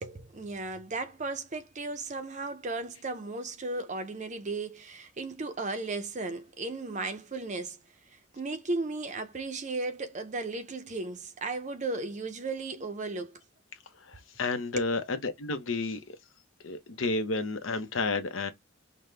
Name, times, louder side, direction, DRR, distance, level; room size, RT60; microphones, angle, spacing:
voice 1, 0.0-7.8 8.1-13.4 14.8-14.9, right 3 dB, 35° right, 0.5 m, -35 dB
voice 2, 14.1-16.0 16.6-18.5, left 3 dB, 75° left, 0.7 m, -31 dB
5.3 x 2.1 x 3.2 m
head